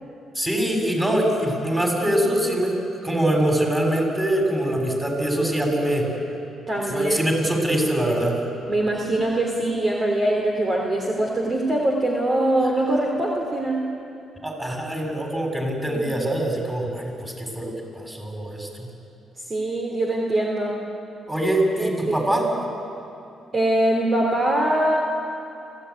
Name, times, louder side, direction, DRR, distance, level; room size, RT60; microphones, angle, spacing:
voice 1, 0.3-2.7 3.0-6.1 6.9-8.3 14.4-18.9 21.3-22.5, right 1 dB, 10° right, 1 dB, 6.8 m, -23 dB
voice 2, 6.7-7.3 8.7-13.9 15.9-16.2 19.5-20.8 21.8-22.3 23.5-25.0, right 1 dB, 35° right, 0 dB, 3.4 m, -23 dB
26.0 x 16.0 x 9.6 m, 2.7 s
cardioid pair, 90°, 0 cm